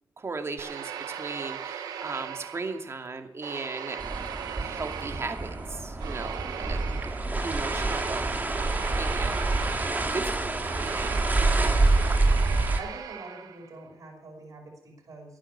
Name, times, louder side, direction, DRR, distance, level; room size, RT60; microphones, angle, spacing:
voice 1, 0.2-4.0 4.6-7.0 7.4-9.8 10.1-11.3, right 3 dB, 40° right, 5 dB, 2.5 m, -37 dB
sound 1, 0.6-3.0 3.4-13.7, right 8 dB, 85° right, 1.3 m, -38 dB
sound 2, 4.0-12.8, right 2 dB, 25° right, 2.2 m, -27 dB
voice 2, 12.8-15.4, right 2 dB, 60° right, 0 dB, 5.5 m, -45 dB
13.0 x 8.9 x 8.3 m, 0.80 s
supercardioid pair, 50°, 7 cm